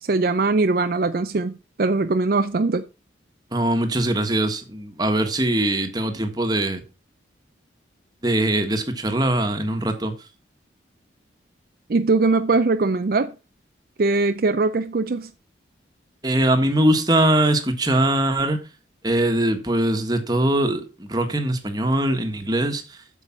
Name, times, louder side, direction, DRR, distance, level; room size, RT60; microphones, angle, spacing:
voice 1, 0.1-1.5 1.8-2.8 11.9-13.3 14.0-15.3, right 3 dB, 50° right, 0.5 m, -21 dB
voice 2, 3.5-6.8 8.2-10.1 16.2-18.6 19.0-23.0, right 1 dB, 20° right, 1.4 m, -22 dB
8.2 x 7.0 x 5.8 m
head